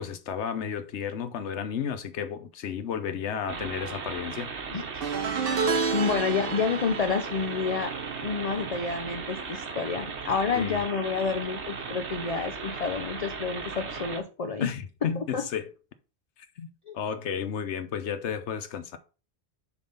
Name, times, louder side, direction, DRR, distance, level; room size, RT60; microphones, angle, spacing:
voice 1, 0.0-4.5 10.5-10.8 14.6-15.7 16.6-16.7 16.9-19.0, left 7 dB, 90° left, 1.1 m, -32 dB
sound 1, 3.5-14.2, right 5 dB, 85° right, 1.5 m, -37 dB
voice 2, 4.7-5.1 5.9-7.9 8.2-14.7 15.2-15.4 16.9-17.0, left 5 dB, 45° left, 0.6 m, -29 dB
sound 2, 5.0-10.4 10.7-11.0 12.3-12.4, right 5 dB, 60° right, 1.1 m, -32 dB
7.0 x 3.9 x 5.4 m
omnidirectional pair, 1.1 m